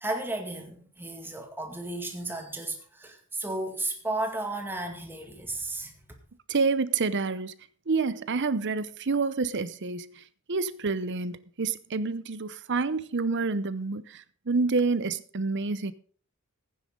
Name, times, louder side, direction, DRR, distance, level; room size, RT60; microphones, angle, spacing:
voice 1, 0.0-5.9, right 2 dB, 10° right, 2.0 m, -34 dB
voice 2, 6.5-7.5 7.9-10.2 10.5-15.9, right 4 dB, 55° right, 0.8 m, -28 dB
15.0 x 9.8 x 3.8 m
head